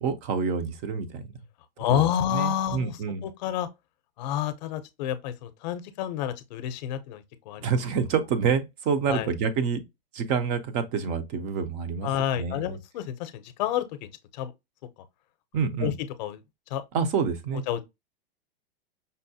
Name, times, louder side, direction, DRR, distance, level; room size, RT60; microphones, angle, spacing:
voice 1, 0.0-1.2 1.9-3.3 7.6-9.8 10.1-12.1 12.4-12.8 15.5-16.0 16.9-17.6, right 6 dB, 25° right, 0.4 m, -27 dB
voice 2, 1.8-3.7 4.2-7.6 9.1-9.3 12.0-13.9 14.4-14.5 15.8-15.9 16.2-16.4 16.7-16.8 17.7-17.8, left 10 dB, 45° left, 0.6 m, -29 dB
5.4 x 2.0 x 2.7 m
supercardioid pair, 150°, 30 cm